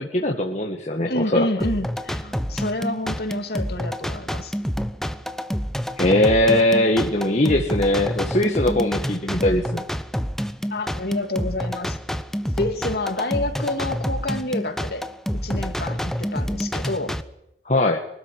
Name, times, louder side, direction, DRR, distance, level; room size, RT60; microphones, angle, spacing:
voice 1, 0.0-1.5 6.0-9.9 17.7-18.0, left 1 dB, 35° left, 1 dB, 1.8 m, -20 dB
voice 2, 1.1-4.5 10.7-12.0 12.6-15.0 15.3-17.2, left 1 dB, 55° left, 6 dB, 3.0 m, -28 dB
sound 1, 1.6-17.2, equal, ahead, 0.8 m, -28 dB
24.0 x 13.0 x 9.7 m, 0.84 s
head